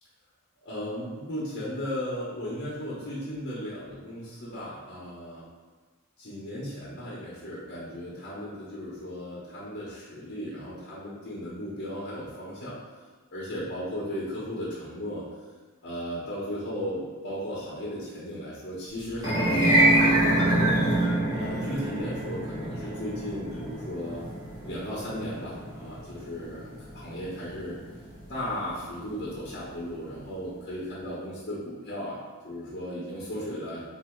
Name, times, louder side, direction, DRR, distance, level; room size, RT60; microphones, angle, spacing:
voice 1, 0.6-5.4 6.2-12.8 13.3-15.2 15.8-20.7 21.3-24.2 24.6-26.7 26.9-27.8 28.3-33.8, equal, 50° left, -7 dB, 1.2 m, -36 dB
sound 1, 19.1-29.5, right 1 dB, 15° right, 1.4 m, -26 dB
3.9 x 3.0 x 4.5 m, 1.4 s
head